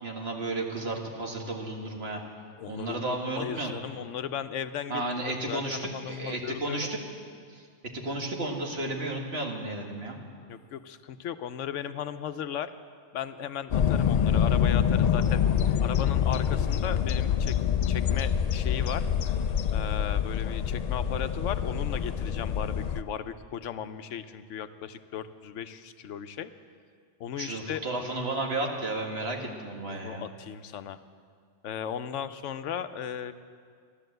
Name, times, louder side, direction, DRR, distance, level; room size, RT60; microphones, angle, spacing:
voice 1, 0.0-2.2 2.7-3.7 4.9-7.0 7.5-7.7 7.9-10.2 27.4-30.2, right 2 dB, 60° right, 1 dB, 2.0 m, -33 dB
voice 2, 2.6-5.0 5.5-6.9 10.5-12.7 13.1-15.4 15.8-17.6 17.9-19.1 19.7-26.5 27.2-27.8 29.9-31.0 31.6-33.3, left 9 dB, 90° left, 11 dB, 1.0 m, -36 dB
sound 1, 13.7-23.0, left 8 dB, 65° left, 0.4 m, -26 dB
14.0 x 12.0 x 7.9 m, 2.1 s
omnidirectional pair, 1.2 m